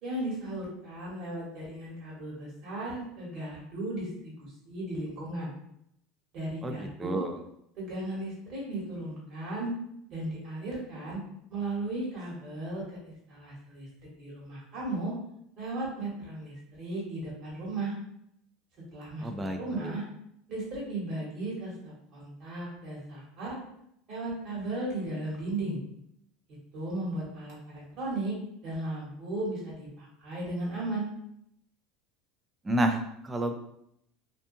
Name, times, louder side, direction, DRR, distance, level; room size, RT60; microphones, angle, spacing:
voice 1, 0.0-5.5 6.3-7.2 7.8-9.7 10.1-11.2 11.5-13.9 14.2-15.1 15.6-17.9 18.9-19.3 19.5-20.0 20.5-23.6 24.1-25.8 26.7-28.3 28.6-31.1, right 2 dB, 45° right, -5 dB, 1.4 m, -36 dB
voice 2, 6.6-7.4 19.2-19.9 32.6-33.5, right 1 dB, 15° right, 5 dB, 0.3 m, -30 dB
2.6 x 2.4 x 2.6 m, 0.74 s
supercardioid pair, 135°, 0 cm